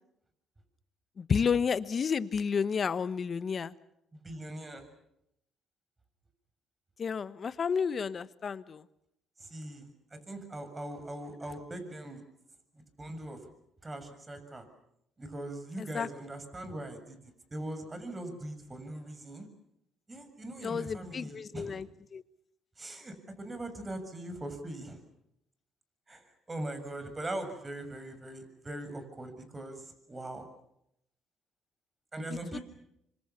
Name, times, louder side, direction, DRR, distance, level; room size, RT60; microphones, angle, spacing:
voice 1, 1.2-3.7 7.0-8.8 15.8-16.1 20.6-21.9 22.1-22.2 32.5-32.6, left 6 dB, 45° left, 14 dB, 1.2 m, -31 dB
voice 2, 4.1-4.9 9.4-12.2 13.0-13.4 13.8-14.7 15.2-17.2 17.5-19.5 20.1-21.8 22.8-25.0 26.1-30.5 32.1-32.6, right 1 dB, 25° right, 8 dB, 7.0 m, -41 dB
27.0 x 25.5 x 7.1 m, 0.79 s
supercardioid pair, 70°, 0 cm